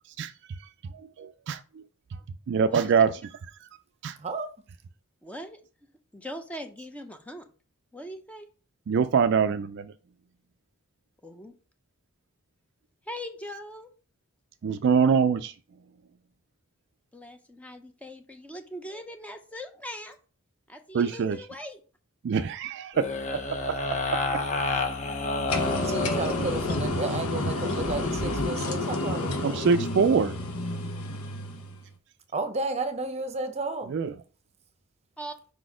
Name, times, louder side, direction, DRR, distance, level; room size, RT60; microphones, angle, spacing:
voice 1, 0.2-1.8 2.1-2.2 2.5-3.2 3.6-3.7 4.0-4.2 8.9-9.9 14.6-15.6 20.9-21.5 22.2-24.2 29.4-30.4 33.9-34.2, right 6 dB, 55° right, 0.3 m, -25 dB
voice 2, 5.2-5.6 6.1-7.4 7.9-8.5 11.2-11.5 13.1-13.9 17.1-20.2 20.7-21.8 35.2-35.4, equal, 5° left, 0.6 m, -40 dB
sound 1, 22.9-26.9 27.7-28.4, left 2 dB, 35° left, 0.8 m, -30 dB
sound 2, 25.5-31.8, left 2 dB, 85° left, 1.0 m, -30 dB
voice 3, 25.8-29.7 32.3-33.9, right 3 dB, 30° right, 0.8 m, -32 dB
5.0 x 4.1 x 4.8 m
head